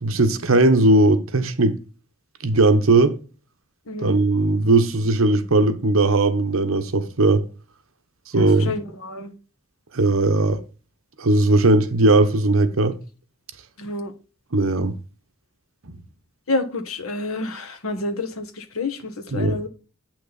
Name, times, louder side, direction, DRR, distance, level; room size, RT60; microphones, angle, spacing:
voice 1, 0.0-1.8 2.4-3.2 4.0-7.4 8.3-8.7 9.9-10.6 11.2-13.0 14.5-14.9 19.3-19.6, right 2 dB, 75° right, 1.0 m, -18 dB
voice 2, 3.9-4.2 8.3-9.3 13.8-14.1 16.5-19.7, left 2 dB, 90° left, 1.4 m, -29 dB
8.5 x 6.2 x 4.1 m
head